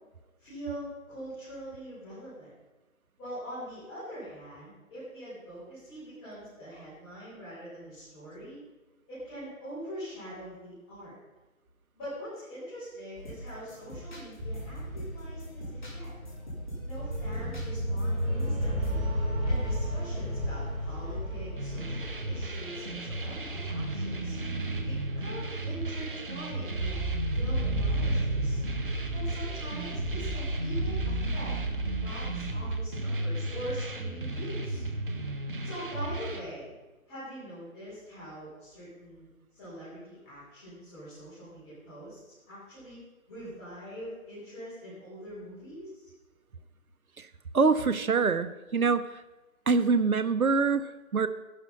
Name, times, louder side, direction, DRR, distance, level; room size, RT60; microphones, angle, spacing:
voice 1, 0.4-2.5 3.2-8.6 9.1-11.1 11.9-16.1 16.8-19.1 19.4-24.3 24.8-27.0 27.3-28.6 29.1-31.5 32.0-34.8 35.6-36.7 37.1-42.2 42.5-43.0 43.3-46.1, equal, 10° left, -14 dB, 4.6 m, -43 dB
sound 1, 13.1-19.0, equal, 35° left, 4.1 m, -46 dB
sound 2, 14.4-32.7, right 1 dB, 20° right, 4.0 m, -33 dB
sound 3, 21.6-36.4, right 2 dB, 40° right, 1.3 m, -35 dB
voice 2, 47.5-49.2 49.7-51.3, right 4 dB, 85° right, 13 dB, 0.9 m, -25 dB
12.0 x 11.5 x 5.5 m, 1.2 s
figure-of-eight pair, 160°, 42 cm